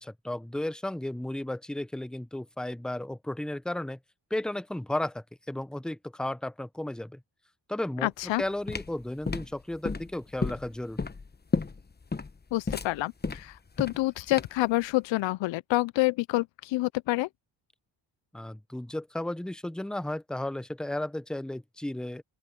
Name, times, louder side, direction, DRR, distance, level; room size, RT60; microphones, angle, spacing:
voice 1, 0.0-4.0 4.3-7.2 7.7-11.0 18.3-22.2, left 1 dB, ahead, 0.8 m, -34 dB
voice 2, 8.0-8.4 12.5-17.3, left 18 dB, 70° left, 0.6 m, -28 dB
sound 1, 8.2-14.7, left 4 dB, 20° left, 1.1 m, -33 dB
open air
cardioid pair, 70°, 46 cm